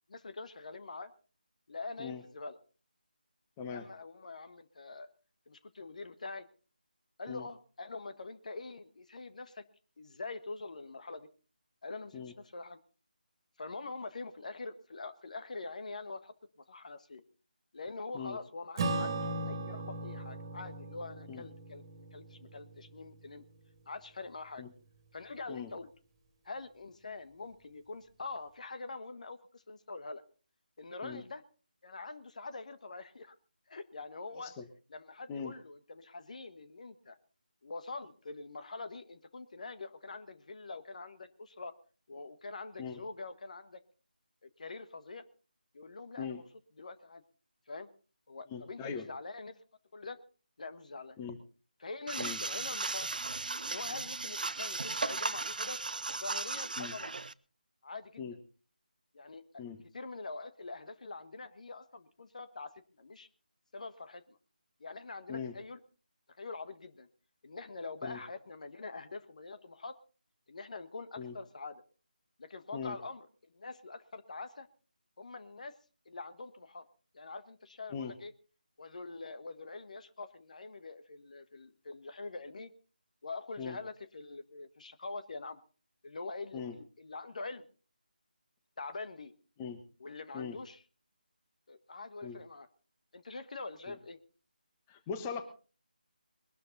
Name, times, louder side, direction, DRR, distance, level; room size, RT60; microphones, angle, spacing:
voice 1, 0.1-1.1 1.7-2.6 3.7-5.1 5.5-6.5 7.2-9.6 10.0-11.3 11.8-12.8 13.6-16.3 16.7-17.2 17.7-21.8 22.1-23.4 23.9-24.6 25.1-25.9 26.4-30.2 30.8-31.4 31.8-33.3 33.7-34.5 34.9-37.2 37.6-41.7 42.1-43.8 44.4-45.2 45.7-46.4 46.8-47.2 47.7-47.9 48.3-49.6 49.9-50.2 50.6-51.2 51.8-53.1 53.6-55.8 56.1-57.1 57.8-58.2 59.1-59.6 59.9-62.7 63.0-63.3 63.7-64.4 64.8-65.8 66.4-67.1 67.4-70.0 70.5-71.8 72.4-74.7 75.2-75.7 76.0-76.9 77.1-78.3 78.8-82.7 83.2-85.6 86.0-87.7 88.8-89.3 90.0-90.8 91.7-92.7 93.1-94.2, left 3 dB, 50° left, 11 dB, 1.4 m, -44 dB
voice 2, 3.6-3.9 7.3-7.5 12.1-12.3 18.1-18.4 21.3-21.5 24.6-24.7 25.5-25.7 31.0-31.2 34.3-34.7 35.3-35.6 42.8-43.0 46.2-46.4 48.5-49.1 51.2-51.4 52.2-52.4 56.8-56.9 58.2-58.3 59.6-59.8 65.3-65.5 68.0-68.2 71.2-71.4 72.7-73.0 77.9-78.1 83.6-83.8 86.5-86.8 89.6-89.8 90.3-90.6 92.2-92.4 93.9-94.0 94.9-95.4, left 6 dB, 15° left, 8 dB, 1.2 m, -40 dB
Acoustic guitar / Strum, 18.8-23.5, right 2 dB, 25° right, 2.3 m, -38 dB
sound 1, 52.1-57.3, right 3 dB, 60° right, 0.7 m, -36 dB
21.0 x 12.5 x 4.0 m, 0.37 s
figure-of-eight pair, 160°, 5 cm